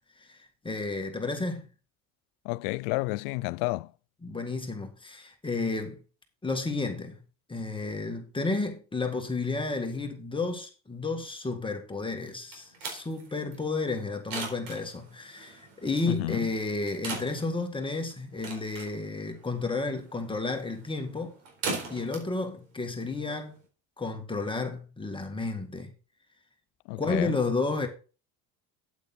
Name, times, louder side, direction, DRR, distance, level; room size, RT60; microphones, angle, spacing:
voice 1, 0.2-1.7 4.2-6.0 6.4-7.2 7.5-21.4 21.9-23.6 24.0-25.9 27.0-27.9, left 3 dB, 10° left, 1.8 m, -32 dB
voice 2, 2.4-3.9 16.0-16.4 26.9-27.3, left 24 dB, 80° left, 0.5 m, -30 dB
sound 1, 12.2-23.7, right 4 dB, 80° right, 4.3 m, -41 dB
8.6 x 8.2 x 4.1 m
supercardioid pair, 120°, 42 cm